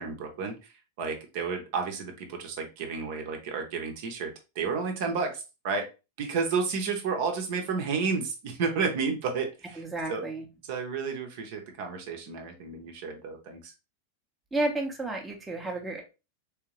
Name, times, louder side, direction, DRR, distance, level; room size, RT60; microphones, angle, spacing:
voice 1, 0.0-5.9 6.2-10.3 10.6-13.7, right 5 dB, 50° right, 4 dB, 0.9 m, -32 dB
voice 2, 9.8-10.4 14.5-16.0, right 2 dB, 10° right, 1 dB, 0.8 m, -31 dB
3.6 x 3.2 x 3.0 m, 0.29 s
figure-of-eight pair, 90°, 0 cm